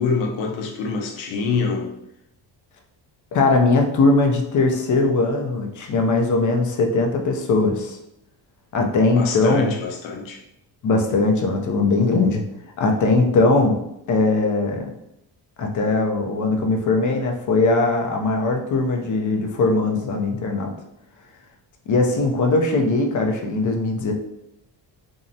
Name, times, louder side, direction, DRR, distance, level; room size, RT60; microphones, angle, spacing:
voice 1, 0.0-1.9 9.1-10.4, left 4 dB, 85° left, 2 dB, 0.6 m, -25 dB
voice 2, 3.3-8.0 8.7-9.7 10.8-12.4 12.8-13.8 14.1-14.9 15.6-20.7 21.9-24.1, left 3 dB, 45° left, 3 dB, 0.5 m, -20 dB
2.6 x 2.0 x 2.6 m, 0.82 s
cardioid pair, 105°, 44 cm